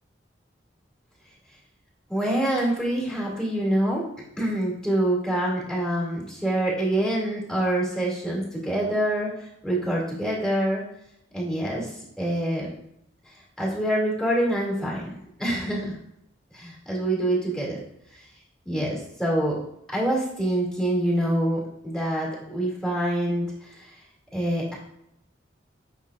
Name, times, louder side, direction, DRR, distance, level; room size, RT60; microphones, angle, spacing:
voice 1, 2.1-4.0 4.4-9.3 9.6-10.8 11.3-11.9 12.2-12.7 13.6-15.9 16.5-17.8 18.7-19.6 19.9-23.9 24.3-24.7, right 1 dB, 5° left, -4 dB, 2.3 m, -26 dB
9.0 x 5.9 x 2.4 m, 0.77 s
head